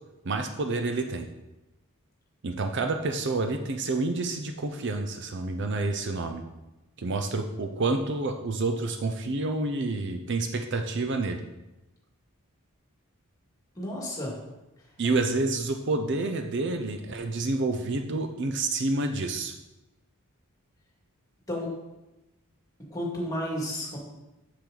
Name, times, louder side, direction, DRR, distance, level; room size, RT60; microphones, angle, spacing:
voice 1, 0.2-1.3 2.4-6.4 7.0-11.4 15.0-19.5, right 3 dB, 55° right, 6 dB, 0.6 m, -28 dB
voice 2, 13.7-14.4 14.8-14.9 21.5-21.7 22.9-24.0, left 1 dB, 15° left, -2 dB, 2.0 m, -32 dB
7.3 x 6.9 x 3.9 m, 1.0 s
head